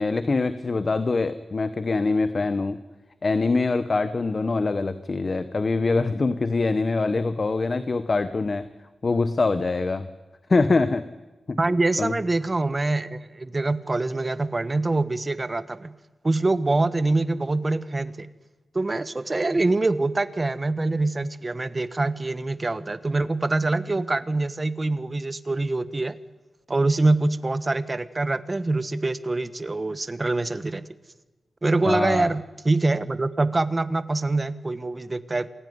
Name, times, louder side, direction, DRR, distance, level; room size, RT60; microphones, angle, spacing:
voice 1, 0.0-2.8 3.2-8.7 9.0-10.1 10.5-11.0 11.5-11.6 12.0-12.1 31.9-32.3, left 3 dB, 40° left, 12 dB, 1.0 m, -24 dB
voice 2, 11.6-15.9 16.2-18.3 18.7-26.2 26.7-30.9 31.6-35.5, right 2 dB, 25° right, 13 dB, 1.1 m, -25 dB
27.5 x 16.5 x 9.6 m, 1.1 s
wide cardioid pair, 120°, 0 cm